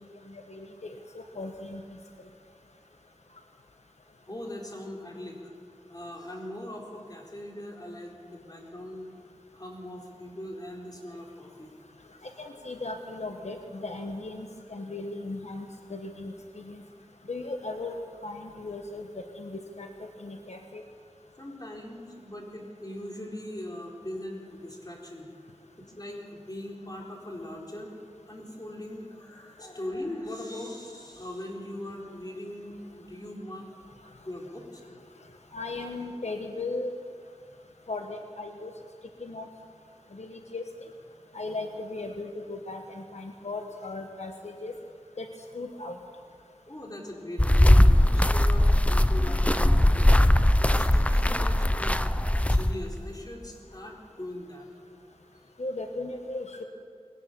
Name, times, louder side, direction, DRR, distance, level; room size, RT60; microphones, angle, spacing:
voice 1, 0.5-1.8 12.4-16.8 17.3-20.8 35.5-36.9 37.9-38.7 39.2-39.5 40.1-40.6 41.3-44.7 45.2-45.3 45.5-46.0 55.6-56.6, left 2 dB, 90° left, 4 dB, 1.3 m, -37 dB
voice 2, 4.3-5.5 5.9-9.1 9.5-11.7 21.4-25.3 25.8-27.9 28.3-33.7 34.2-34.8 46.7-50.2 50.6-52.0 52.4-54.7, left 1 dB, 35° left, -1 dB, 4.2 m, -40 dB
sound 1, 47.4-53.0, left 1 dB, 10° left, 0.7 m, -20 dB
21.0 x 18.5 x 6.9 m, 2.2 s
wide cardioid pair, 50°, 11 cm